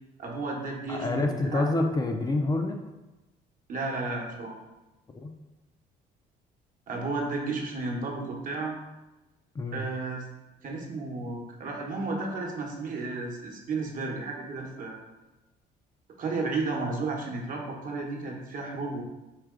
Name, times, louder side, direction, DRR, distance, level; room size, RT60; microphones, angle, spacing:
voice 1, 0.2-1.6 3.7-4.6 6.9-8.8 9.7-10.3 10.6-15.0 16.2-19.0, right 3 dB, 55° right, 0 dB, 1.0 m, -33 dB
voice 2, 0.9-2.8 5.1-5.4 9.6-9.9, left 2 dB, 25° left, 3 dB, 0.4 m, -27 dB
4.9 x 2.8 x 3.6 m, 1.0 s
cardioid pair, 110°, 17 cm